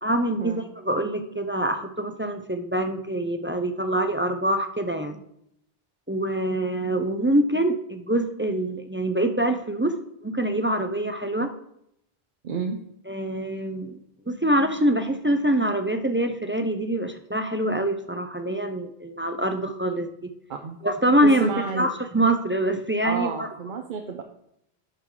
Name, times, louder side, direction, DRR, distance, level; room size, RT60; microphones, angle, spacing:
voice 1, 0.0-5.2 6.1-10.0 10.2-11.5 13.1-13.9 14.3-20.3 20.8-21.5 21.8-23.5, right 1 dB, 20° right, 7 dB, 0.3 m, -25 dB
voice 2, 12.4-12.8 20.5-20.8 21.2-21.9 23.0-24.2, right 5 dB, 55° right, 4 dB, 0.8 m, -30 dB
11.5 x 4.7 x 3.8 m, 0.75 s
omnidirectional pair, 1.0 m